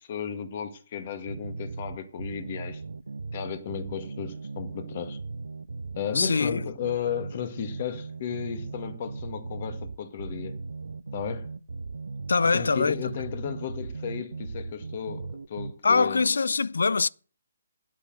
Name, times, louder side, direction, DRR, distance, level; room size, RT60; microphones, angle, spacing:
voice 1, 0.0-2.8 3.3-5.2 6.0-10.6 11.1-11.5 12.5-16.3, left 8 dB, 40° left, 1.9 m, -34 dB
sound 1, 1.3-15.7, right 3 dB, 85° right, 0.6 m, -38 dB
voice 2, 6.1-6.7 12.3-13.0 15.8-17.1, left 4 dB, 80° left, 0.5 m, -23 dB
9.5 x 8.3 x 7.8 m
hypercardioid pair, 155°, 0 cm